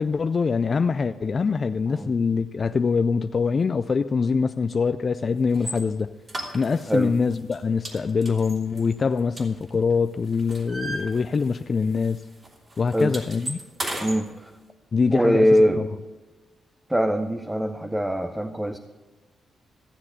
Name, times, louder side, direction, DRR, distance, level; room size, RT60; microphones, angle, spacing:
voice 1, 0.0-6.1 6.5-12.2 12.8-13.6 14.9-15.5 15.8-15.9, left 5 dB, 45° left, 0.4 m, -24 dB
sound 1, 5.5-5.8 6.3-7.0 7.3-7.6 7.8-9.9 10.2-11.7 12.0-12.2 12.4-14.2, right 1 dB, 30° right, 3.2 m, -35 dB
voice 2, 14.0-14.5 15.1-15.8 16.9-18.8, equal, 10° right, 0.7 m, -22 dB
14.5 x 7.4 x 6.6 m
cardioid pair, 75°, 0 cm